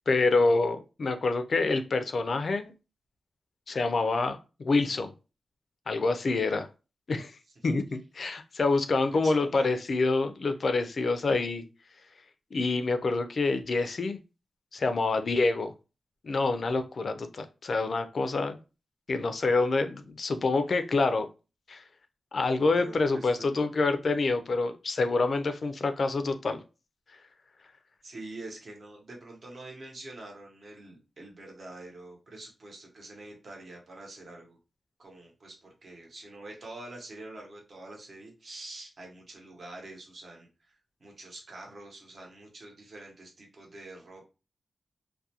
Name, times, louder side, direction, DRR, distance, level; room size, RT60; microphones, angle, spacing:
voice 1, 0.1-2.7 3.7-5.1 5.9-6.7 7.1-7.3 7.6-11.6 12.5-14.2 14.7-15.7 16.2-18.6 19.1-21.3 21.7-21.8 22.3-26.6, left 3 dB, 55° left, 9 dB, 0.4 m, -27 dB
voice 2, 9.1-9.7 16.6-16.7 22.6-23.7 28.0-34.6 35.0-40.7 41.0-44.3, right 2 dB, 55° right, 0 dB, 0.9 m, -46 dB
2.3 x 2.2 x 2.7 m, 0.31 s
wide cardioid pair, 95°, 0 cm